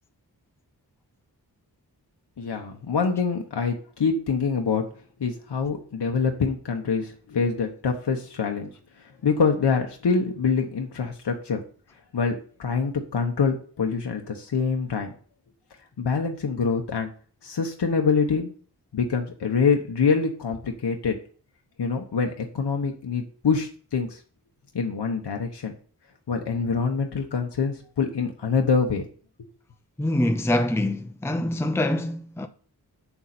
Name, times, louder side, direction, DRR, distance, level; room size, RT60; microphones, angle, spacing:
voice 1, 2.4-4.8 5.2-8.7 9.0-11.6 12.1-15.1 16.0-17.1 17.4-18.5 18.9-21.1 21.8-24.2 24.7-25.7 26.3-29.1, left 5 dB, 90° left, 1.2 m, -25 dB
voice 2, 30.0-32.5, left 1 dB, 5° left, 0.7 m, -25 dB
8.1 x 7.1 x 4.3 m
wide cardioid pair, 70°, 40 cm